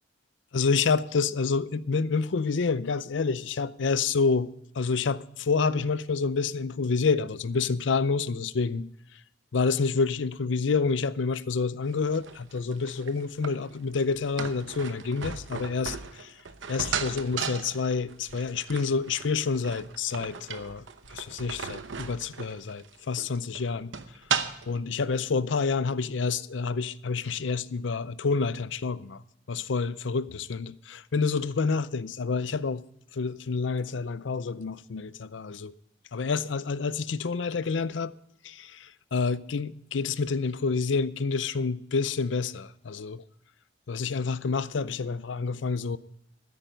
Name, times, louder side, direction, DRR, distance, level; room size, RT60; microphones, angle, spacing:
voice 1, 0.5-4.5 4.8-8.9 9.5-16.3 16.7-20.8 21.1-23.9 24.7-29.2 29.5-30.7 31.1-32.8 33.1-35.7 36.1-38.1 38.4-43.2 43.9-46.0, left 4 dB, 75° left, 0.6 m, -28 dB
sound 1, 11.9-24.8, right 6 dB, 85° right, 0.9 m, -36 dB
13.5 x 10.0 x 5.1 m
head